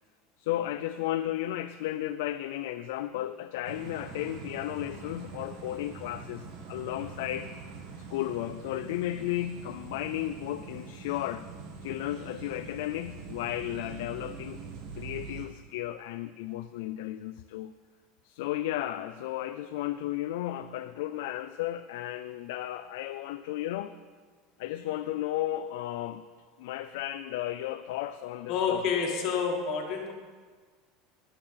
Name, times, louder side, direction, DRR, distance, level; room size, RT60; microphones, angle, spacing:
voice 1, 0.4-7.5 8.1-11.5 11.8-14.6 15.0-17.7 18.2-23.9 24.6-26.2 26.6-28.8, left 13 dB, 80° left, 9 dB, 0.5 m, -34 dB
sound 1, 3.6-15.5, right 5 dB, 65° right, 2.0 m, -44 dB
voice 2, 28.5-30.1, left 6 dB, 50° left, 2 dB, 1.7 m, -28 dB
19.0 x 6.7 x 5.8 m, 1.5 s
supercardioid pair, 145°, 0 cm